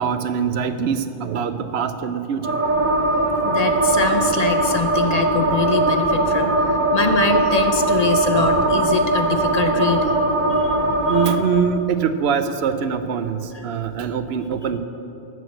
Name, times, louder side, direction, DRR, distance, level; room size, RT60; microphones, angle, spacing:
voice 1, 0.0-2.6 3.1-3.6 8.3-8.8 9.3-10.1 10.4-14.8, right 7 dB, 85° right, 10 dB, 0.9 m, -24 dB
sound 1, 2.4-11.4, right 2 dB, 50° right, 1.1 m, -20 dB
voice 2, 3.4-10.1 10.6-10.8 11.1-11.3, left 4 dB, 45° left, 6 dB, 0.7 m, -24 dB
12.5 x 6.4 x 7.8 m, 2.8 s
omnidirectional pair, 1.0 m